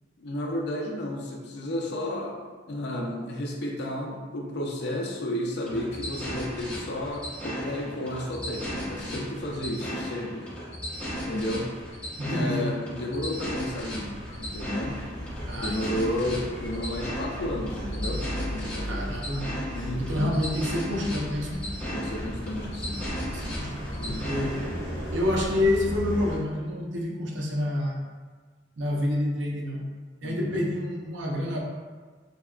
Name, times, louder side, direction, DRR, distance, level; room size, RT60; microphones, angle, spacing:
voice 1, 0.2-2.4 2.7-10.5 11.3-11.7 12.3-15.0 15.6-19.1 19.7-20.4 21.9-23.0 24.0-24.6 30.2-30.7, left 1 dB, 65° left, 0 dB, 0.4 m, -32 dB
sound 1, 5.6-24.8, equal, 5° left, 0.8 m, -36 dB
voice 2, 12.2-12.7 15.5-16.2 18.8-19.5 20.0-21.6 23.2-24.6 25.1-28.0 28.8-29.9 30.2-31.6, left 1 dB, 85° right, -2 dB, 0.5 m, -28 dB
sound 2, 13.7-26.4, equal, 25° left, 1.2 m, -36 dB
3.4 x 2.1 x 2.3 m, 1.4 s
head